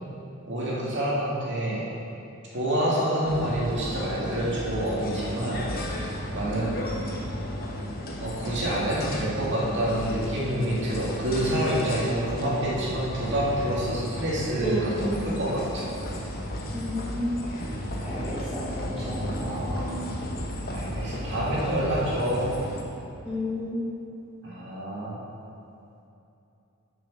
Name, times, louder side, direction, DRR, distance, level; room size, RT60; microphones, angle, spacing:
voice 1, 0.5-1.8 2.5-5.6 6.3-6.8 8.2-15.9 20.6-22.5 24.4-25.2, right 1 dB, 55° right, -6 dB, 2.2 m, -27 dB
sound 1, 3.3-22.8, equal, 45° left, 1.0 m, -34 dB
voice 2, 14.6-15.2 16.7-17.6 18.0-20.0 23.2-23.8, equal, 5° right, -12 dB, 1.8 m, -32 dB
6.8 x 6.5 x 6.4 m, 2.8 s
head